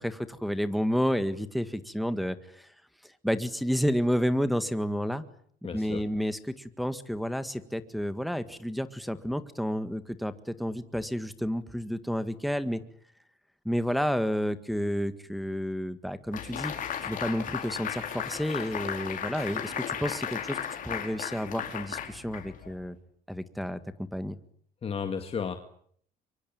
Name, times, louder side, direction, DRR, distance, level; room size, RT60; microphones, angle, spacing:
voice 1, 0.0-2.7 3.2-5.2 5.7-12.8 13.7-16.7 17.0-20.6 20.8-23.0 23.3-24.4, equal, ahead, 10 dB, 1.9 m, -30 dB
voice 2, 5.6-6.0 24.8-25.6, left 6 dB, 35° left, 7 dB, 2.1 m, -33 dB
sound 1, 16.3-22.8, left 8 dB, 50° left, 4.9 m, -35 dB
24.5 x 23.5 x 9.0 m, 0.63 s
cardioid pair, 110°, 17 cm